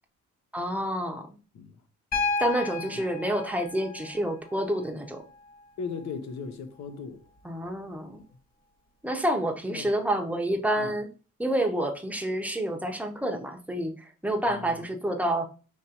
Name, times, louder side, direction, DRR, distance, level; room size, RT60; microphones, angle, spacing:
voice 1, 0.5-1.4 2.4-5.2 7.4-8.2 9.0-11.1 11.4-15.5, right 1 dB, 5° right, 0.7 m, -28 dB
Piano, 2.1-6.1 7.7-7.8, left 4 dB, 30° left, 1.4 m, -34 dB
voice 2, 5.8-7.2 8.1-8.2 9.7-9.9 10.8-11.0 14.5-14.8, left 5 dB, 65° left, 0.8 m, -38 dB
5.1 x 2.9 x 2.9 m
cardioid pair, 90°, 30 cm